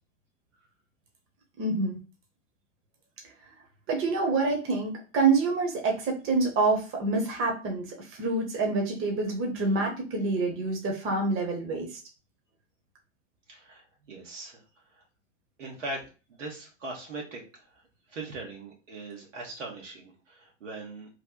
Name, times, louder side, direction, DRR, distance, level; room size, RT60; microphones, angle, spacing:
voice 1, 1.6-2.0 3.9-7.9 8.2-11.9, right 3 dB, 35° right, 1 dB, 1.1 m, -27 dB
voice 2, 13.5-14.6 15.0-15.1 15.6-17.8 18.1-21.1, right 2 dB, 80° right, -1 dB, 1.3 m, -41 dB
3.2 x 2.1 x 3.7 m, 0.33 s
hypercardioid pair, 95°, 36 cm